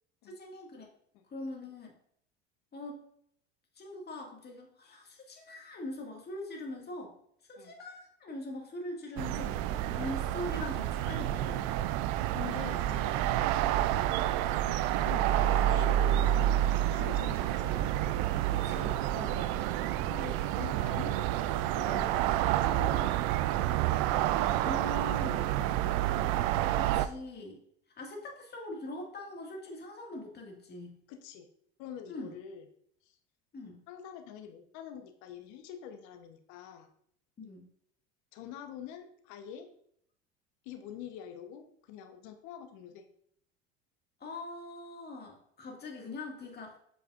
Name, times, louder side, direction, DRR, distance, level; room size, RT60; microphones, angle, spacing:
voice 1, 0.3-0.9 1.3-1.9 2.7-3.0 3.8-7.1 7.5-11.8 13.9-14.1 18.5-19.0 24.6-25.5 26.6-27.6 28.0-31.0 32.1-32.3 33.5-33.8 37.4-37.7 44.2-46.8, left 1 dB, 30° left, 0 dB, 2.0 m, -42 dB
sound 1, 9.2-27.1, right 13 dB, 55° right, 0.5 m, -29 dB
voice 2, 12.3-13.4 14.7-16.6 16.9-18.0 19.2-19.5 20.1-22.2 22.5-23.1 25.0-25.1 31.1-31.5 31.8-32.7 33.0-33.2 33.9-36.9 38.3-39.7 40.6-43.0, left 8 dB, 60° left, 6 dB, 1.0 m, -45 dB
7.5 x 5.3 x 2.5 m, 0.68 s
hypercardioid pair, 75°, 33 cm